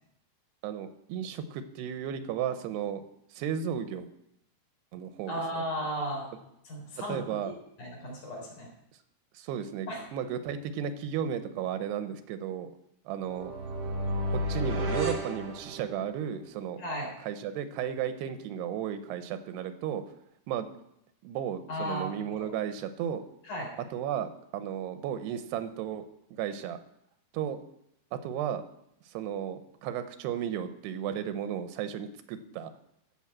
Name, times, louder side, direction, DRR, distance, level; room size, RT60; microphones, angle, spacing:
voice 1, 0.6-3.0 3.3-4.1 4.9-5.6 7.1-7.5 9.3-12.7 13.1-13.5 14.3-16.8 17.2-20.0 20.5-20.7 21.2-23.2 23.9-26.0 26.4-26.8 27.3-27.6 28.1-28.6 29.1-32.7, right 9 dB, 85° right, 10 dB, 2.9 m, -34 dB
voice 2, 5.3-6.3 6.6-7.5 7.8-8.7 9.9-10.0 16.8-17.1 21.7-22.1 22.4-22.5 23.5-23.7, equal, 50° left, -2 dB, 5.0 m, -35 dB
sound 1, 13.2-16.3, equal, 40° right, 1.8 m, -32 dB
14.0 x 6.3 x 7.5 m, 0.78 s
omnidirectional pair, 4.7 m